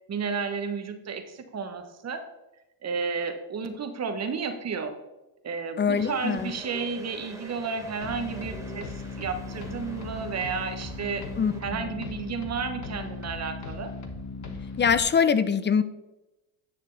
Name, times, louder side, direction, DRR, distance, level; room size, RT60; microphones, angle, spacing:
voice 1, 0.1-2.2 2.8-4.9 5.4-11.3 11.6-13.9, right 5 dB, 40° right, 6 dB, 1.3 m, -32 dB
voice 2, 5.8-6.5 11.4-11.9 14.8-15.8, left 6 dB, 25° left, 14 dB, 0.6 m, -23 dB
sound 1, 5.9-11.6, right 1 dB, 5° right, 1.7 m, -45 dB
sound 2, 8.0-15.0, left 3 dB, 40° left, 1.3 m, -38 dB
9.5 x 6.5 x 3.3 m, 1.0 s
supercardioid pair, 75°, 42 cm